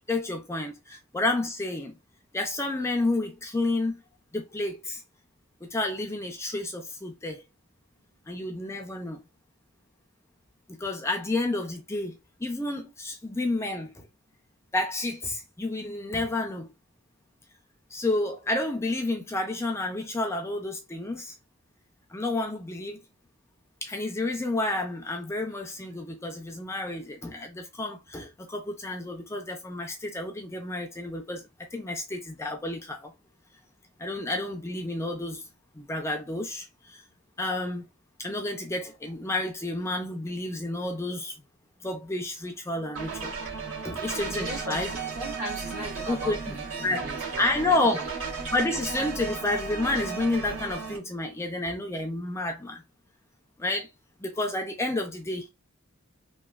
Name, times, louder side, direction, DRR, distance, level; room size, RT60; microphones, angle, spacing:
voice 1, 0.0-2.0 2.3-4.0 4.3-5.0 5.6-7.4 8.3-9.2 10.7-14.0 14.7-16.7 17.9-21.3 22.1-23.0 23.8-33.1 34.0-35.4 35.7-37.0 37.4-37.8 38.2-41.3 41.8-43.4 43.8-44.9 46.1-46.5 46.8-47.1 47.4-48.0 48.5-52.8 53.6-53.9 54.2-55.5, left 2 dB, 15° left, 0.5 m, -30 dB
sound 1, 43.0-51.0, right 5 dB, 75° right, 1.3 m, -35 dB
voice 2, 44.3-47.4 47.8-48.1, right 1 dB, 55° right, 1.9 m, -38 dB
3.1 x 2.3 x 2.3 m
head